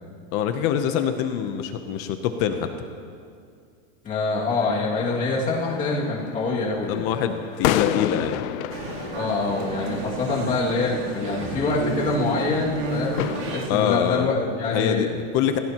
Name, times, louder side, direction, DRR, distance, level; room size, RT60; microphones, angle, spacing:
voice 1, 0.3-2.7 6.9-8.4 13.7-14.3 14.7-15.6, left 9 dB, 35° left, 7 dB, 0.7 m, -24 dB
voice 2, 4.0-7.1 9.1-15.1, left 3 dB, 20° left, -4 dB, 2.3 m, -25 dB
sound 1, 4.5-13.7, left 13 dB, 85° left, 0.7 m, -32 dB
Male speech man speaking, 8.7-13.7, right 3 dB, 45° right, 2.2 m, -31 dB
26.5 x 16.5 x 3.0 m, 2.3 s
supercardioid pair, 170°, 40 cm